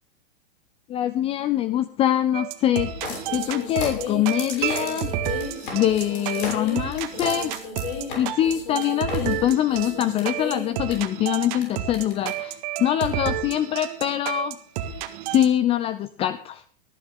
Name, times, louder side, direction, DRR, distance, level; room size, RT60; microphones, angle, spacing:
voice 1, 0.9-2.9 3.3-5.1 5.6-7.5 8.2-14.6 15.3-16.6, left 12 dB, 20° left, 14 dB, 0.5 m, -24 dB
sound 1, 2.3-15.5, right 10 dB, 40° right, 1.7 m, -31 dB
sound 2, 3.0-10.9 11.6-11.7 11.9-12.3 13.0-13.1, left 4 dB, 60° left, 6.5 m, -34 dB
sound 3, 4.6-6.2, right 12 dB, 55° right, 2.0 m, -34 dB
19.5 x 12.5 x 3.8 m, 0.42 s
figure-of-eight pair, 105°, 29 cm